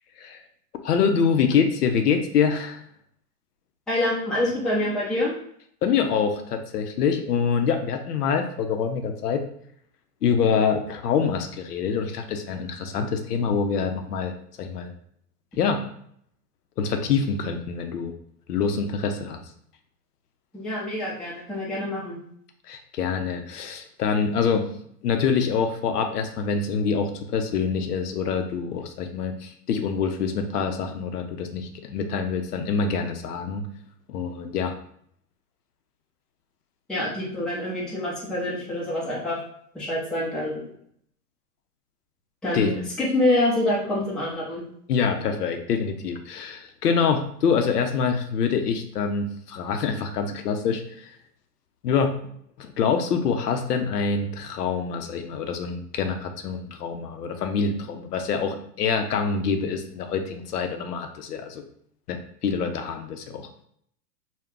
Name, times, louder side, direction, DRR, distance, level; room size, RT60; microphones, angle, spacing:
voice 1, 0.8-2.8 5.8-9.4 10.2-14.3 14.6-14.9 15.6-15.8 16.8-18.1 18.5-19.4 22.7-24.7 25.0-33.6 34.1-34.8 42.5-42.7 44.9-51.1 51.8-52.2 52.6-61.6 62.1-63.5, left 6 dB, 75° left, 5 dB, 0.6 m, -25 dB
voice 2, 3.9-5.3 20.5-22.2 36.9-39.4 39.7-40.6 42.4-44.6, left 1 dB, ahead, -7 dB, 0.5 m, -26 dB
2.4 x 2.2 x 3.6 m, 0.65 s
hypercardioid pair, 115°, 47 cm